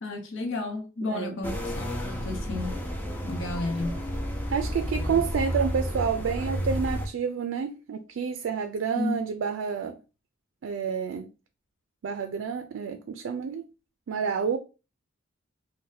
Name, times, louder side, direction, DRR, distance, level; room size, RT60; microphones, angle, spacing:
voice 1, 0.0-2.8 3.2-4.0 9.0-9.2, left 2 dB, 65° left, 0.8 m, -32 dB
voice 2, 1.0-1.4 4.5-10.0 10.6-11.3 12.0-13.6 14.1-14.6, right 6 dB, 70° right, 0.3 m, -29 dB
sound 1, 1.4-7.1, equal, 10° left, 0.5 m, -31 dB
2.6 x 2.1 x 3.9 m
head